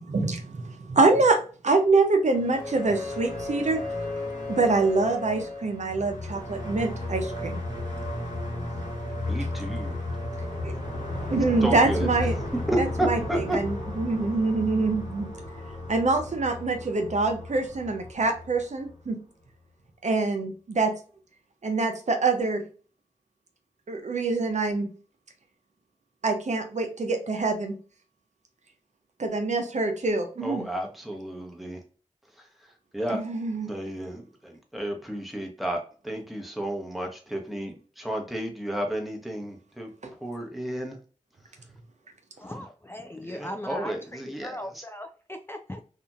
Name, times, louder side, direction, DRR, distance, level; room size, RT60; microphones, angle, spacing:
voice 1, 0.1-1.4 1.6-3.8 4.5-7.6 10.6-10.7 11.3-12.3 13.1-13.2 13.5-15.3 15.9-19.2 20.0-20.9 21.6-22.6 23.9-24.9 26.2-27.7 29.2-30.7 33.1-33.7 40.0-40.1, right 3 dB, 65° right, 0.6 m, -25 dB
sound 1, 2.2-19.1, left 2 dB, 75° left, 1.3 m, -34 dB
voice 2, 9.3-10.0 11.6-12.3 12.7-13.6 30.4-31.8 32.4-33.2 33.7-39.9 40.2-41.0 43.2-44.8, right 1 dB, ahead, 0.9 m, -32 dB
voice 3, 42.4-45.8, left 1 dB, 15° left, 0.4 m, -39 dB
2.8 x 2.5 x 2.3 m
cardioid pair, 40°, 13 cm